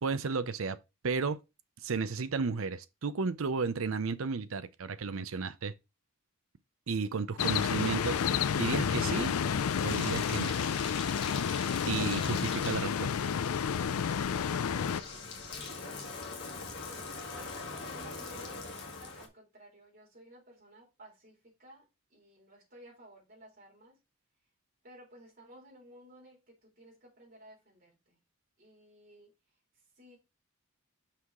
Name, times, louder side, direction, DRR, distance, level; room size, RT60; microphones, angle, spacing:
voice 1, 0.0-0.8 1.0-1.4 1.8-5.7 6.9-8.2 8.6-9.4 9.8-10.6 11.9-13.1, right 4 dB, 70° right, 0.6 m, -33 dB
sound 1, 7.4-15.0, left 7 dB, 90° left, 0.4 m, -30 dB
Bathtub (filling or washing), 7.9-19.3, left 4 dB, 55° left, 2.0 m, -43 dB
voice 2, 14.8-16.1 16.8-24.0 24.8-28.2 28.6-29.3 30.0-30.2, right 1 dB, 40° right, 3.7 m, -55 dB
6.0 x 4.8 x 4.9 m
head